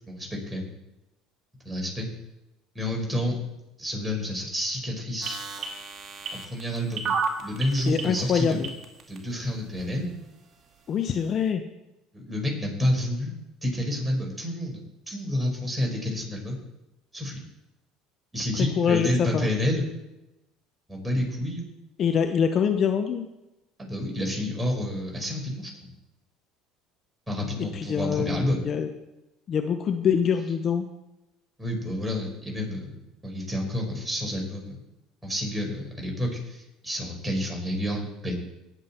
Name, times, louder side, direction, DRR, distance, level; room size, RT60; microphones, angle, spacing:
voice 1, 0.1-0.7 1.7-2.1 2.8-3.4 3.8-5.4 6.4-7.1 7.4-8.6 9.1-10.1 12.1-13.3 13.6-14.8 15.1-16.6 17.1-17.4 18.3-19.8 20.9-21.7 23.8-25.7 27.3-28.6 31.6-34.8 35.2-38.3, left 1 dB, 10° right, -1 dB, 5.4 m, -29 dB
sound 1, 5.2-9.2 9.8-9.9, right 5 dB, 45° right, 2.4 m, -30 dB
voice 2, 7.9-8.7 10.9-11.6 18.8-19.5 22.0-23.3 27.6-28.9 29.5-30.8, left 7 dB, 45° left, 7 dB, 1.0 m, -25 dB
18.5 x 7.5 x 4.5 m, 0.94 s
supercardioid pair, 85°, 0 cm